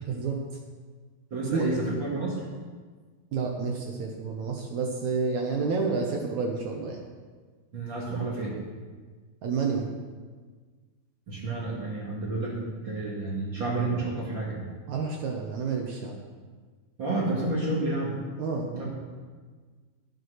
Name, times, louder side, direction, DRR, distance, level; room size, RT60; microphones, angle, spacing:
voice 1, 1.3-2.4 7.7-8.5 11.3-14.7 17.0-18.1 18.7-18.9, right 2 dB, 40° right, -5 dB, 2.2 m, -30 dB
voice 2, 3.3-7.0 9.4-9.9 14.9-16.2 18.4-18.7, right 4 dB, 70° right, 1 dB, 1.8 m, -29 dB
12.5 x 7.8 x 6.4 m, 1.5 s
omnidirectional pair, 4.5 m